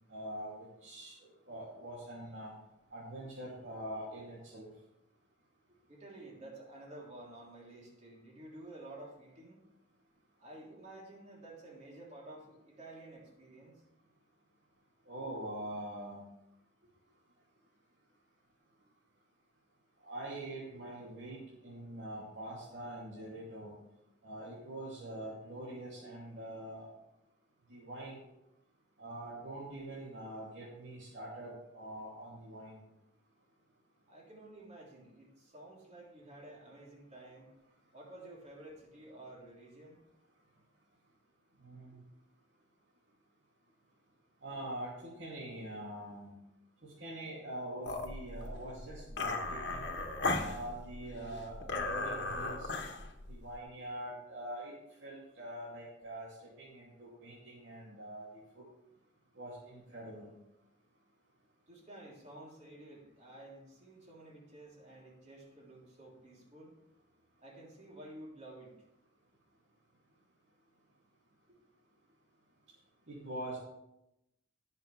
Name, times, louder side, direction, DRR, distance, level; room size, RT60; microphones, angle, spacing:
voice 1, 0.1-2.5 2.9-4.7 15.1-16.2 20.0-23.7 24.2-26.9 27.7-28.2 29.0-32.8 41.6-42.0 44.4-46.3 46.8-49.9 50.4-52.7 53.3-54.7 55.0-58.6 59.3-60.3 73.1-73.6, right 1 dB, 80° right, -7 dB, 2.8 m, -44 dB
voice 2, 5.9-9.6 10.4-13.8 34.1-37.5 37.9-40.0 61.7-66.7 67.4-68.8 71.5-71.6, right 1 dB, 40° right, -3 dB, 3.4 m, -52 dB
sound 1, 47.8-53.6, left 3 dB, 65° left, 1.4 m, -37 dB
18.0 x 6.7 x 3.4 m, 0.86 s
head